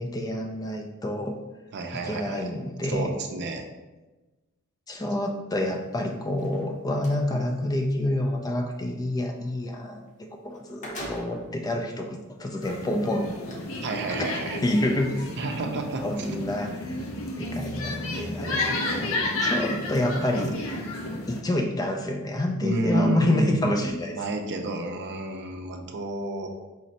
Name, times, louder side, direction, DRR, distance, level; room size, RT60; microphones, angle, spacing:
voice 1, 0.0-1.4 1.9-3.1 4.9-13.3 14.1-14.3 14.6-15.3 16.0-17.0 17.4-20.6 21.3-24.1, left 1 dB, 15° left, 3 dB, 0.3 m, -28 dB
voice 2, 1.7-2.5 2.9-3.6 13.8-14.6 15.4-16.3 22.6-26.5, right 2 dB, 50° right, 4 dB, 0.5 m, -30 dB
sound 1, 6.3-7.2 10.1-10.2 10.5-11.6 12.3-12.4 13.3-13.5, equal, 35° left, 0.8 m, -40 dB
sound 2, 12.6-21.4, left 2 dB, 65° left, 0.7 m, -31 dB
5.0 x 3.1 x 2.8 m, 1.1 s
head